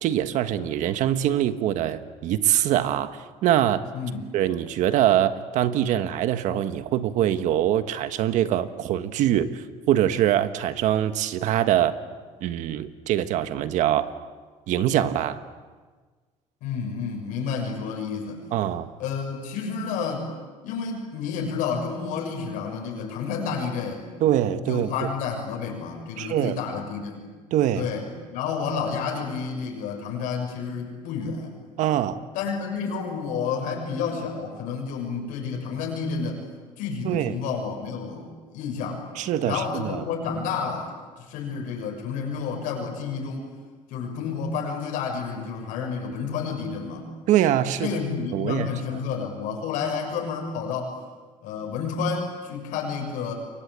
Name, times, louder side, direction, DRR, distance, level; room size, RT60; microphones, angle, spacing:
voice 1, 0.0-3.8 4.3-11.9 12.4-14.1 14.7-15.4 18.5-18.9 24.2-24.9 26.2-26.6 27.5-27.9 31.8-32.2 37.0-37.4 39.2-40.0 47.3-48.0 48.3-48.7, right 11 dB, 70° right, 11 dB, 1.5 m, -23 dB
voice 2, 3.9-4.2 16.6-18.4 19.0-20.3 20.6-24.1 24.7-27.3 27.7-31.5 32.3-36.4 36.8-39.0 39.4-43.5 43.9-47.1 47.8-51.0 51.4-53.3, left 5 dB, 80° left, 1 dB, 6.8 m, -30 dB
28.5 x 23.5 x 8.3 m, 1.4 s
cardioid pair, 130°, 13 cm